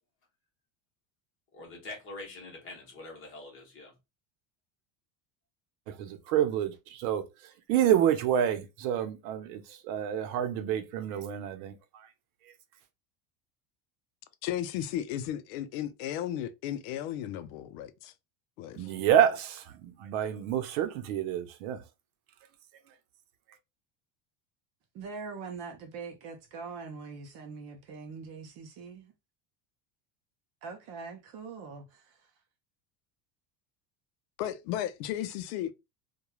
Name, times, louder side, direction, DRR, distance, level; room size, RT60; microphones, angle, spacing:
voice 1, 1.5-3.9, left 2 dB, 30° left, 1.0 m, -44 dB
voice 2, 5.9-7.2 7.7-11.8 18.8-21.8, right 10 dB, 80° right, 0.7 m, -28 dB
voice 3, 14.4-18.1 18.6-18.9 34.4-35.7, left 11 dB, 80° left, 0.5 m, -34 dB
voice 4, 24.9-29.1 30.6-32.2, right 4 dB, 40° right, 0.4 m, -42 dB
3.0 x 2.2 x 2.2 m
cardioid pair, 175°, 43 cm